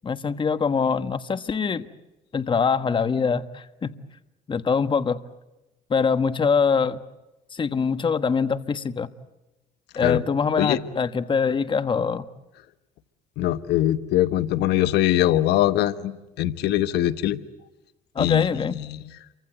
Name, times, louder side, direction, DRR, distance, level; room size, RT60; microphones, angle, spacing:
voice 1, 0.0-1.9 2.3-4.0 4.5-5.2 5.9-7.0 7.5-9.1 9.9-12.3 18.1-18.8, left 5 dB, 30° left, 12 dB, 1.3 m, -23 dB
voice 2, 13.4-17.4 18.2-19.0, left 13 dB, 80° left, 13 dB, 1.2 m, -22 dB
29.0 x 24.5 x 8.0 m, 1.0 s
cardioid pair, 110°, 17 cm